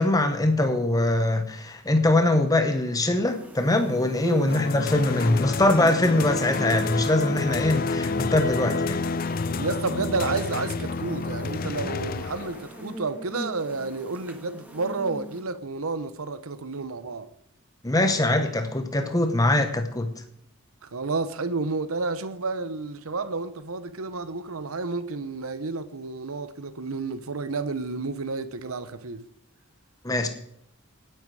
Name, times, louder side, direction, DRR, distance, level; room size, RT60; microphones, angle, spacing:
voice 1, 0.0-9.0 17.8-20.1 30.0-30.3, left 1 dB, 15° left, 1.0 m, -22 dB
sound 1, 3.3-15.4, right 1 dB, 10° right, 1.7 m, -43 dB
voice 2, 4.2-4.6 9.6-17.3 20.8-29.2, right 3 dB, 85° right, 0.9 m, -31 dB
sound 2, 4.5-12.8, left 4 dB, 40° left, 0.4 m, -29 dB
18.0 x 9.1 x 4.8 m
head